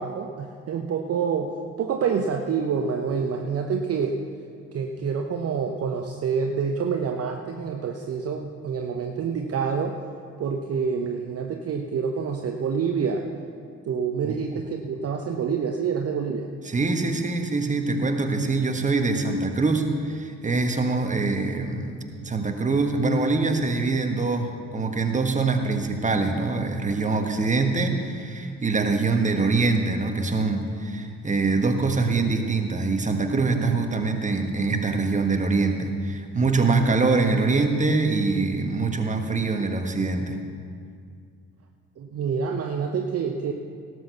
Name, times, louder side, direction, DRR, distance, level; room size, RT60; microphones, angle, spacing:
voice 1, 0.0-1.5 1.8-4.2 4.7-10.0 10.4-13.3 13.8-16.5 42.0-43.5, right 6 dB, 40° right, 4 dB, 0.9 m, -27 dB
voice 2, 14.2-14.6 16.6-40.4, right 3 dB, 20° right, 5 dB, 1.5 m, -24 dB
17.5 x 6.4 x 6.9 m, 2.2 s
figure-of-eight pair, 45°, 37 cm